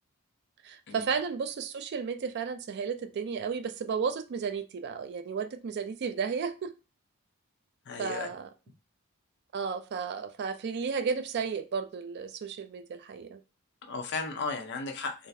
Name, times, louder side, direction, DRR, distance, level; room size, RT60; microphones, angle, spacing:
voice 1, 0.6-6.7 8.0-8.5 9.5-13.4, right 6 dB, 50° right, 0.3 m, -33 dB
voice 2, 7.9-8.3 13.8-15.3, left 4 dB, 55° left, 0.6 m, -35 dB
3.7 x 2.4 x 2.7 m
head